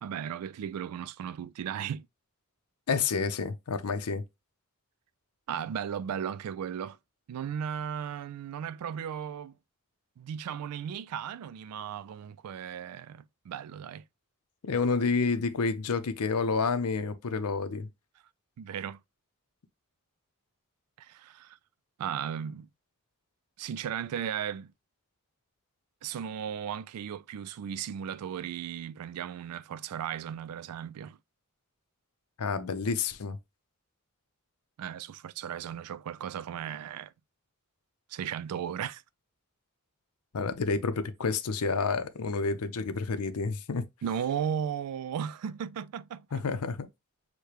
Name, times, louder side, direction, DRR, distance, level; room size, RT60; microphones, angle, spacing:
voice 1, 0.0-2.1 5.5-7.0 7.3-9.5 10.2-14.0 18.6-19.0 21.0-21.6 22.0-22.7 23.6-24.7 26.0-31.2 34.8-37.1 38.1-39.0 44.0-46.4, right 8 dB, 85° right, 0.3 m, -36 dB
voice 2, 2.9-4.2 14.6-17.9 32.4-33.4 40.3-43.8 46.3-46.9, left 4 dB, 90° left, 0.6 m, -29 dB
6.5 x 2.2 x 2.9 m
head